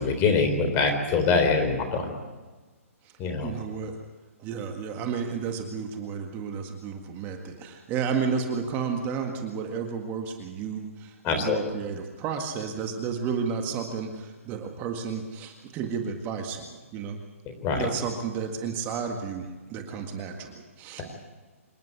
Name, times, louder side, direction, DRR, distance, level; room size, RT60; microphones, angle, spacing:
voice 1, 0.0-2.1 3.2-3.5 11.2-11.6 17.6-17.8, left 4 dB, 25° left, 5 dB, 3.7 m, -24 dB
voice 2, 3.4-3.9 4.4-17.2 17.8-21.0, right 6 dB, 25° right, 3 dB, 1.9 m, -32 dB
26.5 x 11.0 x 9.7 m, 1.3 s
hypercardioid pair, 140°, 8 cm